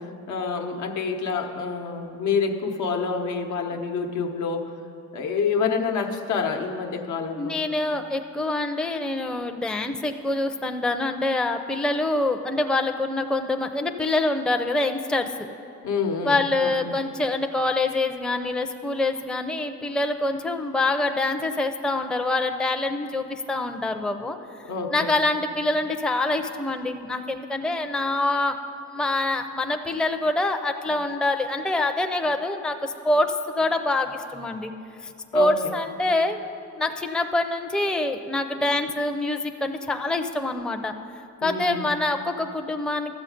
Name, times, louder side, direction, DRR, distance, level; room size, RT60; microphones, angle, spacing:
voice 1, 0.0-4.7 5.1-7.5 15.8-17.0 24.6-25.2 35.3-35.7 41.4-41.8, left 5 dB, 75° left, 3 dB, 1.0 m, -28 dB
voice 2, 7.3-15.5 16.2-24.4 24.9-28.6 28.9-34.7 35.3-36.4 36.7-40.9 41.4-43.1, left 2 dB, 5° left, 6 dB, 0.5 m, -25 dB
13.0 x 7.2 x 5.1 m, 2.6 s
cardioid pair, 90°, 30 cm